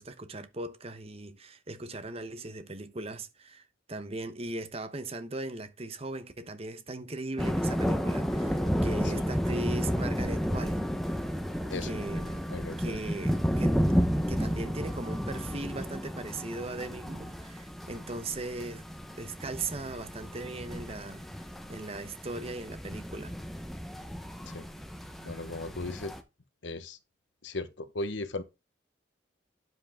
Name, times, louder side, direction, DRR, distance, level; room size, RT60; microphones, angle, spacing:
voice 1, 0.0-10.9 11.8-12.5 12.8-13.9 14.3-18.8 19.2-21.3 21.7-23.3, right 2 dB, 30° right, 0.9 m, -38 dB
sound 1, 7.4-26.2, equal, ahead, 0.9 m, -32 dB
voice 2, 12.5-13.0 24.5-24.6 25.2-26.1 26.6-27.0 27.4-28.4, left 2 dB, 75° left, 1.0 m, -36 dB
9.6 x 7.7 x 3.6 m
head